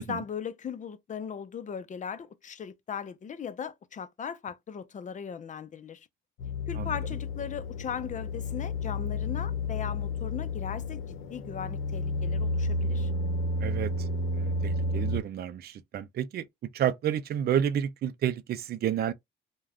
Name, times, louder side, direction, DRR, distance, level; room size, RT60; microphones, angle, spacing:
voice 1, 0.0-6.1 6.7-13.1, left 7 dB, 40° left, 0.5 m, -38 dB
sound 1, 6.4-15.2, left 2 dB, 85° left, 0.7 m, -31 dB
voice 2, 13.6-14.1 14.3-16.4 16.7-19.1, right 9 dB, 55° right, 0.4 m, -30 dB
2.4 x 2.2 x 3.3 m
cardioid pair, 90°, 20 cm